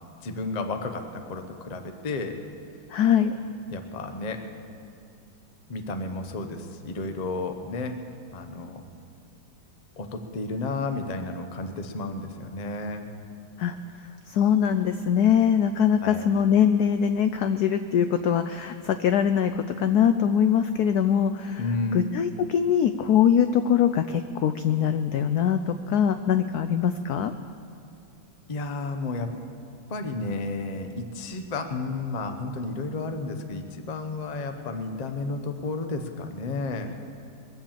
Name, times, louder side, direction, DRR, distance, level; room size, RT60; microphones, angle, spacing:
voice 1, 0.2-2.4 3.7-4.4 5.7-8.0 8.3-8.8 10.0-13.1 16.0-16.3 21.6-22.0 28.5-29.3 29.9-36.9, left 3 dB, 40° left, 6 dB, 0.5 m, -32 dB
voice 2, 2.9-3.3 13.6-13.8 14.3-21.6 21.9-27.3, left 8 dB, 80° left, 9 dB, 0.8 m, -22 dB
22.0 x 7.4 x 7.4 m, 2.4 s
omnidirectional pair, 2.2 m